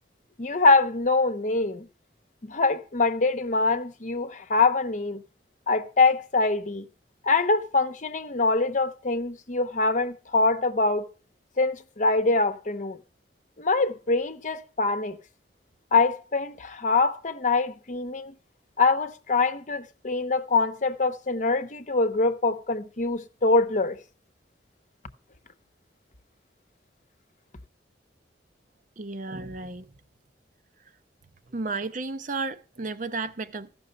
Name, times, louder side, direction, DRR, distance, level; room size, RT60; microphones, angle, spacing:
voice 1, 0.4-1.9 2.4-5.2 5.7-6.9 7.2-11.0 11.6-13.0 13.6-15.2 15.9-18.3 18.8-24.0, left 3 dB, 45° left, 0.9 m, -24 dB
voice 2, 29.0-29.9 31.5-33.7, right 3 dB, 45° right, 0.7 m, -33 dB
14.5 x 6.1 x 6.7 m
head